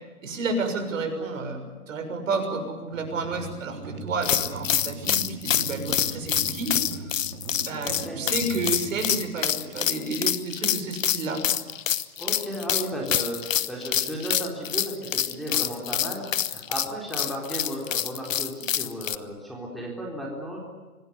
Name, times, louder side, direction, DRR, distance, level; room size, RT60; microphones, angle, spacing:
voice 1, 0.2-7.1 7.6-11.6, right 3 dB, 55° right, 5 dB, 6.7 m, -31 dB
sound 1, 2.9-9.8, right 3 dB, 70° right, 4.0 m, -40 dB
sound 2, 4.2-19.2, left 10 dB, 60° left, 1.2 m, -26 dB
voice 2, 7.8-8.2 12.2-20.6, equal, ahead, -3 dB, 4.2 m, -34 dB
26.0 x 18.0 x 9.6 m, 1.3 s
hypercardioid pair, 145°, 45 cm